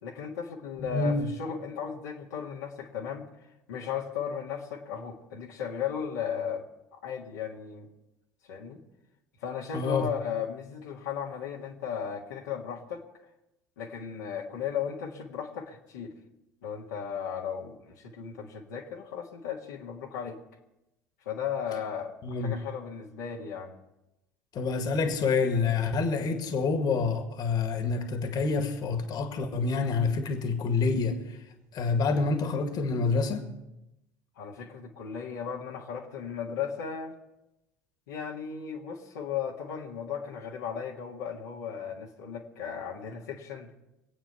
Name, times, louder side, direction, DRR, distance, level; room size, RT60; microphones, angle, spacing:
voice 1, 0.0-3.3 3.7-6.6 6.9-7.9 8.5-8.8 9.4-13.0 13.8-16.1 16.6-20.4 21.3-23.8 34.4-37.1 38.1-43.7, left 7 dB, 75° left, 1.8 m, -36 dB
voice 2, 0.8-1.2 9.7-10.1 22.2-22.6 24.5-31.2 31.7-33.5, left 4 dB, 45° left, 2.0 m, -27 dB
24.0 x 8.9 x 5.7 m
figure-of-eight pair, 65°, 9 cm